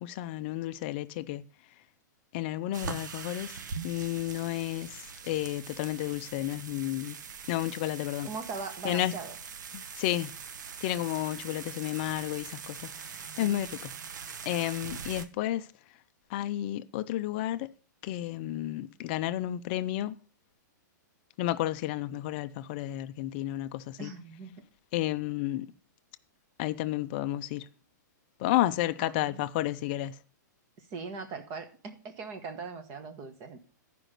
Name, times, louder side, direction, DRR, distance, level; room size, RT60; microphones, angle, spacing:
voice 1, 0.0-1.4 2.3-3.6 3.8-5.0 5.3-7.2 7.5-8.3 8.8-9.1 9.7-10.3 10.8-12.9 13.1-13.9 14.4-15.7 16.3-17.7 18.0-20.2 21.4-24.1 24.9-25.7 26.6-27.6 28.4-30.1, left 14 dB, 35° left, 0.5 m, -31 dB
sound 1, 2.7-15.2, right 6 dB, 70° right, 0.9 m, -42 dB
voice 2, 8.2-9.4 13.4-13.7 24.0-24.5 29.0-29.4 30.9-33.6, right 4 dB, 25° right, 1.2 m, -40 dB
10.5 x 5.1 x 6.5 m
hypercardioid pair, 165°, 10 cm